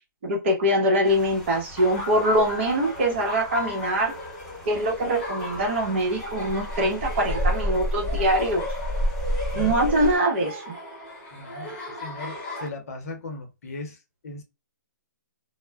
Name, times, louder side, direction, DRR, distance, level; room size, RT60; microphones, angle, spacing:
voice 1, 0.2-4.1 4.7-8.6 9.5-10.7, right 1 dB, 35° right, 0.8 m, -23 dB
Rain, 1.0-10.2, equal, 5° left, 1.2 m, -32 dB
Laughter, 1.8-12.7, left 2 dB, 25° left, 1.0 m, -36 dB
voice 2, 11.3-14.0 14.2-14.4, left 2 dB, 50° left, 0.8 m, -37 dB
2.2 x 2.1 x 3.3 m
hypercardioid pair, 170°, 10 cm